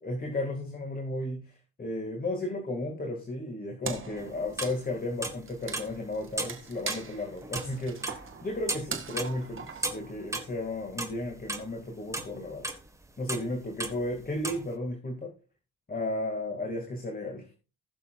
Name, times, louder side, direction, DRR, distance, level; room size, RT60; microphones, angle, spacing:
voice 1, 0.0-12.7 13.2-15.3 15.9-17.5, left 1 dB, 25° left, 2 dB, 2.1 m, -34 dB
Wood, 3.8-10.6, right 5 dB, 35° right, 1.7 m, -41 dB
sound 1, 4.2-4.8 5.2-6.0 6.4-7.7 8.0-8.9 9.2-10.7 11.0-11.7 12.1-12.9 13.3-13.5 13.8-14.6, right 2 dB, 10° right, 1.3 m, -35 dB
19.5 x 6.9 x 2.4 m, 0.32 s
cardioid pair, 140°, 36 cm